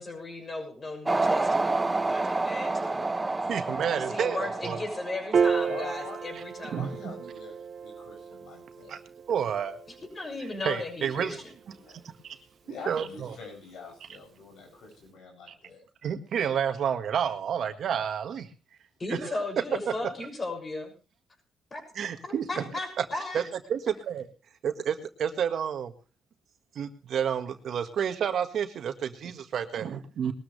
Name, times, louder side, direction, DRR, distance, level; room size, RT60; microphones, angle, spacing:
voice 1, 0.0-1.7 2.1-3.0 3.9-6.8 10.1-11.5 19.0-20.9 21.7-21.8 22.2-23.4, left 2 dB, 30° left, 4 dB, 6.3 m, -36 dB
sound 1, 1.1-5.7, right 2 dB, 20° right, 0.8 m, -29 dB
voice 2, 3.5-4.8 6.7-7.1 8.9-9.0 9.3-9.8 10.6-11.4 12.0-12.3 12.9-13.3 16.0-18.5 19.1-19.4 21.9-22.7 23.0-23.1 23.3-23.4 23.7-24.3 24.6-25.9 26.7-30.3, right 8 dB, 65° right, 7 dB, 1.6 m, -30 dB
Piano, 5.3-12.0, right 6 dB, 50° right, 0.6 m, -33 dB
voice 3, 5.6-6.3 6.7-9.0 11.7-12.0 12.6-15.8, left 5 dB, 75° left, 2 dB, 7.2 m, -45 dB
20.5 x 13.5 x 3.3 m, 0.34 s
cardioid pair, 90°, 0 cm